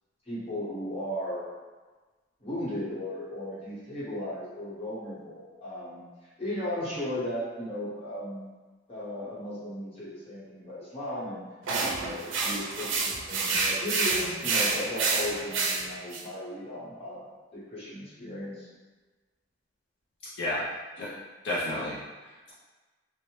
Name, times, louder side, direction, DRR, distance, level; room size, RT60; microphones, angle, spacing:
voice 1, 0.3-1.5 2.4-6.1 6.4-8.5 8.9-11.4 11.8-17.2 17.5-18.7, left 1 dB, 35° left, -9 dB, 1.0 m, -36 dB
sound 1, 11.7-16.2, right 3 dB, 85° right, 0.4 m, -28 dB
voice 2, 20.4-20.7 21.0-21.1 21.4-22.5, left 1 dB, 65° left, -7 dB, 0.5 m, -32 dB
2.6 x 2.1 x 3.0 m, 1.3 s
head